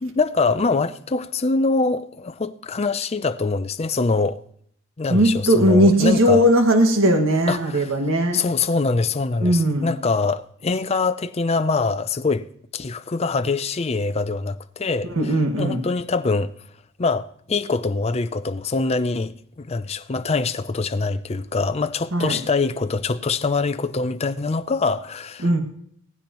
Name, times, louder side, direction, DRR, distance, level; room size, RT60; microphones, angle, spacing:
voice 1, 0.0-4.4 5.0-6.4 7.5-7.9 8.3-12.4 12.7-16.5 17.0-25.6, left 3 dB, 30° left, 0.5 m, -24 dB
voice 2, 5.1-8.4 9.4-9.9 15.1-15.8 22.1-22.4 25.4-25.6, right 1 dB, 65° right, 1.9 m, -18 dB
17.5 x 15.5 x 3.0 m
head